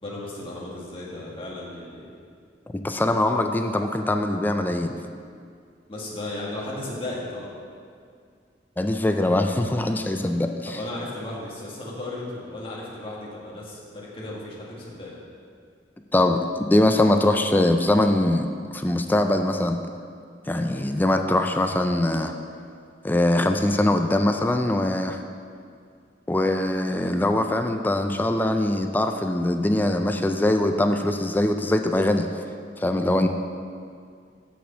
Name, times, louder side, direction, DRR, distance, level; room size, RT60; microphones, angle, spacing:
voice 1, 0.0-2.1 5.9-7.5 10.7-15.2, left 1 dB, 30° left, -5 dB, 1.7 m, -35 dB
voice 2, 2.7-5.0 8.8-10.8 16.1-18.5 18.7-19.8 20.5-22.3 23.0-25.2 26.3-32.3 32.8-33.3, left 1 dB, 10° left, 6 dB, 0.4 m, -22 dB
6.2 x 6.0 x 7.0 m, 2.2 s
head